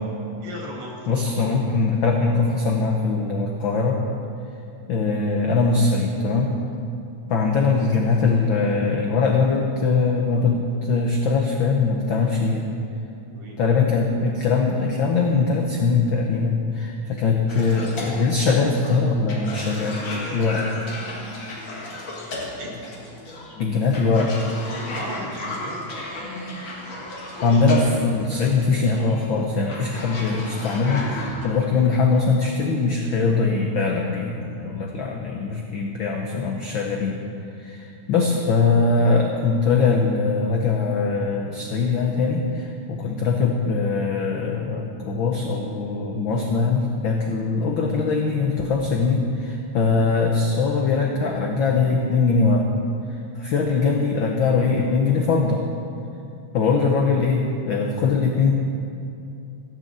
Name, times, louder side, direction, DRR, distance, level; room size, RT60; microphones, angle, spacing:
voice 1, 0.4-0.9 1.2-1.4 13.3-13.6 17.0-17.3 22.6-22.7 24.9-26.0, right 1 dB, 65° right, -2 dB, 3.6 m, -37 dB
voice 2, 1.1-4.0 4.9-6.5 7.3-12.7 13.6-20.0 20.3-20.6 23.6-24.3 27.4-37.2 37.6-52.7 53.4-55.6 56.5-58.5, left 4 dB, 75° left, 1 dB, 1.1 m, -21 dB
Cough, 17.5-31.5, left 2 dB, 45° left, 2.3 m, -34 dB
15.5 x 6.8 x 7.5 m, 2.7 s
omnidirectional pair, 3.3 m